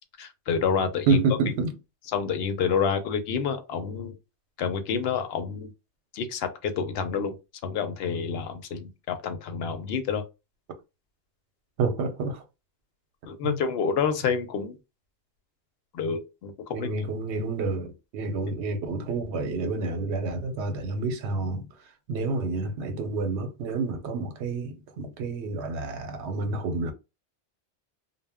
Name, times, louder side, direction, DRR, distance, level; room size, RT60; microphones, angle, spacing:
voice 1, 0.2-1.2 2.1-4.2 4.6-5.7 6.1-7.4 7.6-10.2 13.3-14.8 15.9-16.9, left 6 dB, 70° left, 0.8 m, -28 dB
voice 2, 1.1-1.8 11.8-12.4 13.4-13.6 16.7-26.9, right 3 dB, 80° right, 0.9 m, -29 dB
2.1 x 2.1 x 3.4 m
omnidirectional pair, 1.1 m